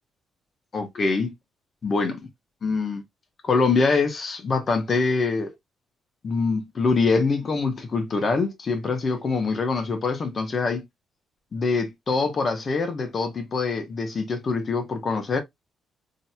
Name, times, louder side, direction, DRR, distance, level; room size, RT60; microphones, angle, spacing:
voice 1, 0.7-1.3 1.8-2.3 2.6-3.0 3.4-5.5 6.2-10.8 11.5-15.4, left 4 dB, 40° left, 1.0 m, -24 dB
3.9 x 2.8 x 2.3 m
cardioid pair, 90°, 0 cm